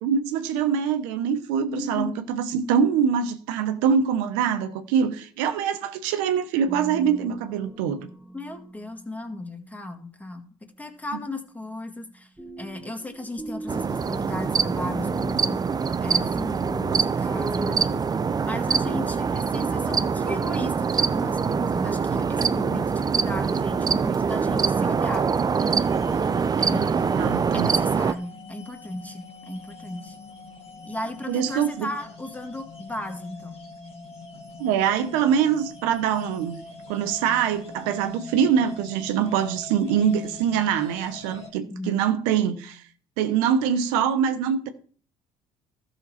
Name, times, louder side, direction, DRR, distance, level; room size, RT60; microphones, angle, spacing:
voice 1, 0.0-8.1 27.1-27.7 31.3-31.9 34.6-42.8 43.2-44.7, right 8 dB, 90° right, 1.0 m, -24 dB
voice 2, 1.7-2.1 8.3-10.5 10.8-12.3 12.6-15.7 16.0-18.1 18.4-25.3 26.6-27.3 27.5-30.2 30.8-33.6 41.7-42.0, left 1 dB, 10° left, 1.9 m, -35 dB
sound 1, 6.7-9.8 12.4-18.4, right 1 dB, 10° right, 1.0 m, -40 dB
sound 2, 13.7-28.1, right 6 dB, 25° right, 0.5 m, -24 dB
sound 3, 25.6-41.5, left 3 dB, 40° left, 2.0 m, -43 dB
13.0 x 6.3 x 4.3 m
supercardioid pair, 75°, 14 cm